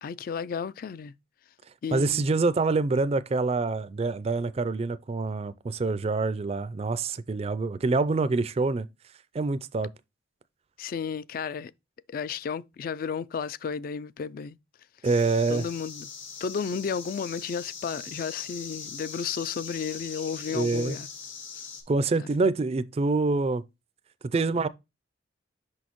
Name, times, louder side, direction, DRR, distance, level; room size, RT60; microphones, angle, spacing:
voice 1, 0.0-1.1 1.8-2.2 10.8-11.7 12.1-14.6 15.5-16.1 16.4-21.1 22.2-22.3, left 6 dB, 50° left, 0.3 m, -33 dB
voice 2, 1.9-8.9 9.3-9.9 15.0-15.7 20.5-21.0 21.9-23.6 24.3-24.7, right 3 dB, 30° right, 0.4 m, -26 dB
sound 1, 15.0-21.8, left 6 dB, 90° left, 1.9 m, -41 dB
6.2 x 5.4 x 3.0 m
head